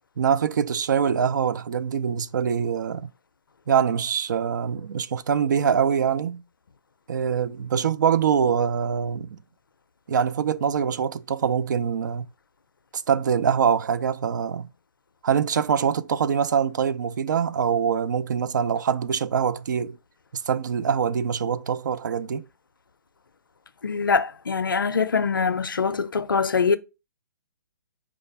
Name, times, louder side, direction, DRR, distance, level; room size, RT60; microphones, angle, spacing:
voice 1, 0.2-3.1 3.7-6.4 7.1-9.4 10.1-12.3 12.9-14.7 15.2-20.0 20.5-22.5, right 7 dB, 60° right, 0.4 m, -24 dB
voice 2, 23.8-26.8, left 5 dB, 85° left, 0.5 m, -23 dB
5.0 x 2.4 x 3.9 m
figure-of-eight pair, 130°, 11 cm